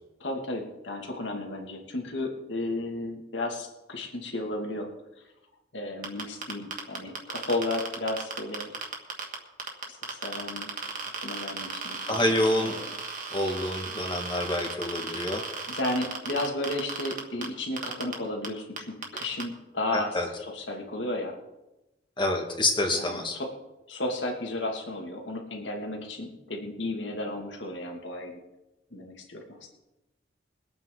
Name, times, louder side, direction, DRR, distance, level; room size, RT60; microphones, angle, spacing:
voice 1, 0.2-4.9 5.7-8.7 9.9-10.7 11.2-12.9 15.7-20.2 20.5-21.4 22.9-23.5 23.9-28.4 28.9-29.7, left 2 dB, 80° left, 2 dB, 2.4 m, -33 dB
sound 1, 6.0-9.3 9.6-17.5 17.8-18.1 18.4-18.5 18.8-19.4, right 5 dB, 45° right, 2.0 m, -35 dB
voice 2, 12.1-12.8 13.3-15.4 19.9-20.3 22.2-23.4, left 1 dB, 25° left, 2 dB, 1.9 m, -27 dB
23.0 x 9.0 x 4.0 m, 0.98 s
head